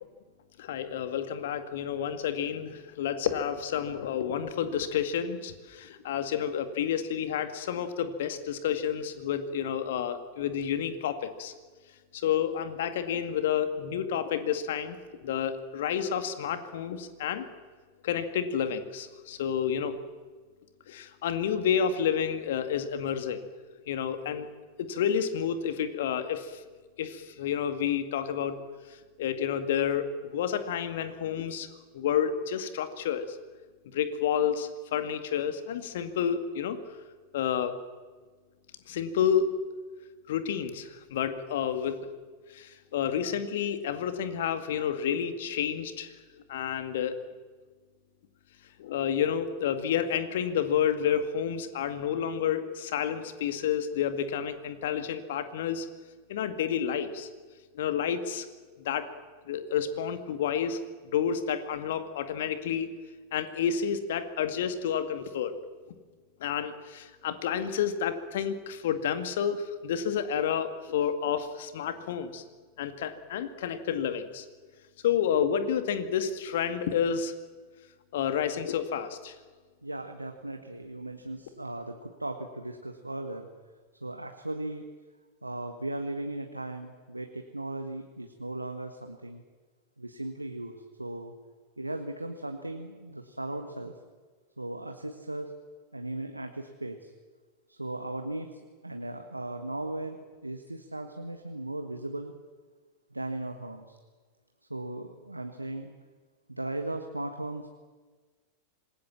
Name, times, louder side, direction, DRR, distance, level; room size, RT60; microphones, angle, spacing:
voice 1, 0.6-11.5 12.1-15.0 15.2-17.5 18.0-20.0 20.9-23.5 23.9-24.5 24.8-26.6 27.0-28.6 29.2-31.7 31.9-33.4 33.9-36.8 37.3-37.8 38.9-39.5 40.3-42.0 42.5-46.1 46.5-47.2 48.8-55.9 56.3-57.3 57.7-58.5 58.8-59.1 59.5-60.8 61.1-62.9 63.3-65.5 66.4-72.4 72.8-74.4 75.0-77.3 78.1-79.3, left 8 dB, 55° left, 9 dB, 2.3 m, -30 dB
voice 2, 79.8-83.5 84.0-84.8 85.4-89.4 90.0-91.3 91.8-94.0 94.6-95.5 95.9-97.1 97.7-102.3 103.1-103.9 104.7-105.9 106.5-107.7, right 2 dB, 85° right, 5 dB, 1.6 m, -37 dB
26.5 x 20.0 x 7.4 m, 1.4 s
figure-of-eight pair, 90°, 0 cm